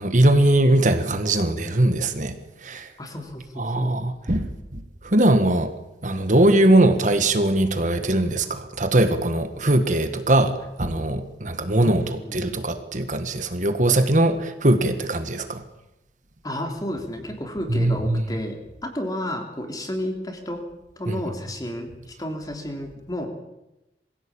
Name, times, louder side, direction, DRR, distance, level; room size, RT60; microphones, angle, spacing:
voice 1, 0.0-2.3 2.6-2.9 3.6-5.7 6.0-12.0 12.3-15.6 17.7-18.2 21.1-21.2, right 1 dB, 45° right, 8 dB, 1.6 m, -21 dB
voice 2, 3.0-3.9 11.8-12.4 16.4-20.6 21.0-23.3, left 1 dB, 20° left, 4 dB, 3.3 m, -32 dB
23.0 x 16.0 x 8.8 m, 0.94 s
head